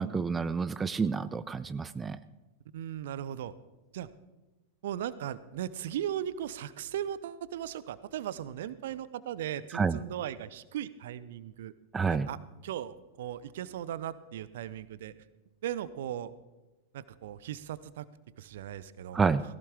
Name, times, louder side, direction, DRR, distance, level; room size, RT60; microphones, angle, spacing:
voice 1, 0.0-2.2 9.7-10.0 11.9-12.3 19.1-19.4, right 5 dB, 15° right, 14 dB, 0.5 m, -29 dB
voice 2, 2.7-3.5 3.9-4.1 4.8-11.7 12.1-12.4 12.6-15.1 15.6-16.3 16.9-18.1 18.4-19.2, right 11 dB, 55° right, 17 dB, 0.7 m, -37 dB
18.0 x 16.0 x 3.6 m, 1.1 s
figure-of-eight pair, 90°, 0 cm